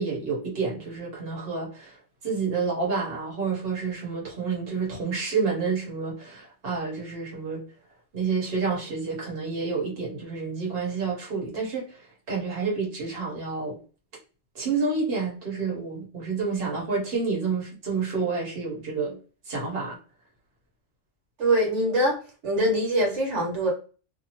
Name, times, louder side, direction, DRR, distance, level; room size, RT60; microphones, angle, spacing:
voice 1, 0.0-1.9 2.2-7.6 8.1-12.0 12.3-13.8 14.5-19.2 19.5-20.0, right 4 dB, 55° right, 1.3 m, -29 dB
voice 2, 21.4-22.2 22.4-23.7, right 1 dB, 85° right, 1.4 m, -23 dB
2.6 x 2.4 x 2.8 m
omnidirectional pair, 1.2 m